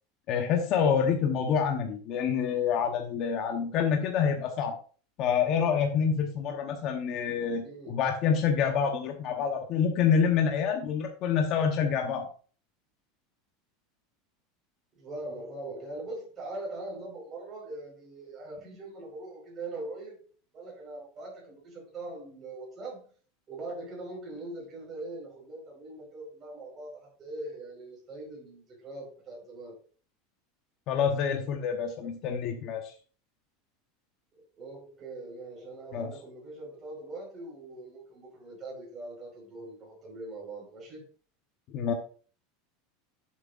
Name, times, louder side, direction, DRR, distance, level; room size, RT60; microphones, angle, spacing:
voice 1, 0.3-4.7 5.2-12.3 30.9-32.9 35.9-36.1 41.7-41.9, left 7 dB, 35° left, 3 dB, 1.0 m, -27 dB
voice 2, 7.6-8.0 14.9-20.2 20.5-23.1 23.5-29.8 34.6-41.0, right 2 dB, 20° right, -3 dB, 4.8 m, -41 dB
11.0 x 7.5 x 2.6 m, 0.40 s
supercardioid pair, 170°, 0 cm